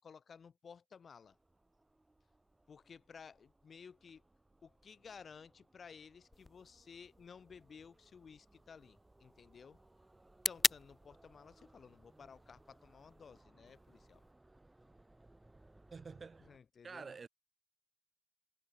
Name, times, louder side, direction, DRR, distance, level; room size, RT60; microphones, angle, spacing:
voice 1, 0.0-1.4 2.7-4.2 4.6-9.8 10.5-14.2 16.4-17.1, left 6 dB, 80° left, 1.1 m, -56 dB
sound 1, 1.2-16.6, right 2 dB, 25° right, 6.5 m, -66 dB
sound 2, 6.3-14.3, left 3 dB, 35° left, 0.4 m, -43 dB
voice 2, 15.9-16.5 16.8-17.3, right 5 dB, 65° right, 0.5 m, -48 dB
cardioid pair, 55°, 0 cm